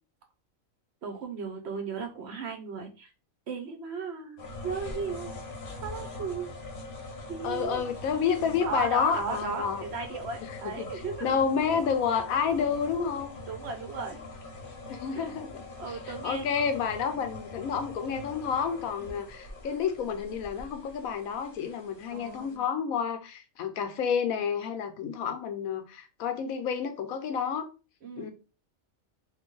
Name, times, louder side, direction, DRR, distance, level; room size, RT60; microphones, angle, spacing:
voice 1, 1.0-3.1 3.5-5.4 5.8-6.5 7.3-7.9 8.6-11.3 13.4-14.2 15.1-15.3 15.8-16.4 19.0-19.2 22.1-22.6 28.0-28.3, right 5 dB, 60° right, 0.9 m, -36 dB
sound 1, 4.4-22.6, left 3 dB, 45° left, 0.9 m, -43 dB
voice 2, 7.4-9.8 10.4-10.9 11.2-13.4 14.9-27.7 28.2-28.3, left 7 dB, 85° left, 1.1 m, -30 dB
3.0 x 2.6 x 3.7 m
omnidirectional pair, 1.4 m